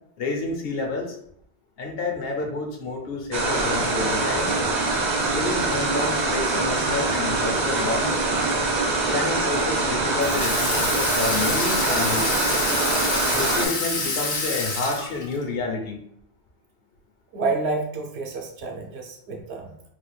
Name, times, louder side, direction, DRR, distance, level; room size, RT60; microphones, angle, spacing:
voice 1, 0.2-1.2 1.8-4.5 5.3-8.2 9.1-12.3 13.3-16.0, left 3 dB, 65° left, 2 dB, 0.9 m, -29 dB
sound 1, 3.3-13.7, right 3 dB, 50° right, 0.7 m, -24 dB
Water tap faucet / Sink (filling or washing), 10.2-15.4, left 3 dB, 85° left, 1.1 m, -27 dB
voice 2, 17.3-19.7, right 3 dB, 75° right, 2 dB, 1.0 m, -29 dB
3.9 x 2.3 x 3.2 m, 0.70 s
omnidirectional pair, 1.1 m